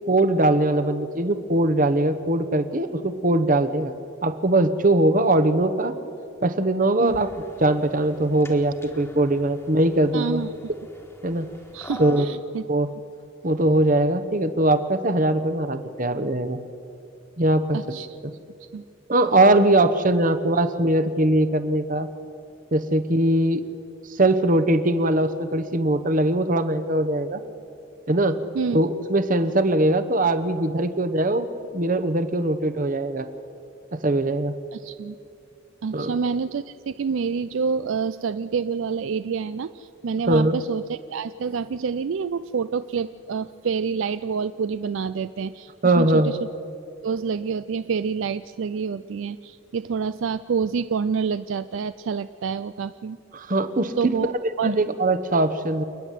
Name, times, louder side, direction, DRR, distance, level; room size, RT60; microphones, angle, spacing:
voice 1, 0.1-3.9 4.2-5.9 6.4-7.3 7.6-10.4 11.2-11.5 12.0-12.3 12.7-12.9 13.4-16.6 17.4-17.8 18.2-18.3 19.1-22.1 22.7-23.6 24.2-27.4 28.1-28.4 28.7-31.5 31.7-33.3 33.9-34.5 35.9-36.1 40.3-40.5 45.8-46.3 53.3-53.9 54.2-54.3 54.6-55.8, right 1 dB, 40° right, 11 dB, 1.0 m, -21 dB
sound 1, 7.0-12.2, left 1 dB, 10° left, 1.5 m, -43 dB
voice 2, 10.1-10.5 11.7-12.6 17.7-18.1 18.7-18.8 28.5-28.8 34.7-35.2 35.8-46.5 47.0-53.2 54.0-54.8, right 5 dB, 65° right, 13 dB, 0.4 m, -27 dB
28.5 x 9.9 x 9.2 m, 2.6 s
head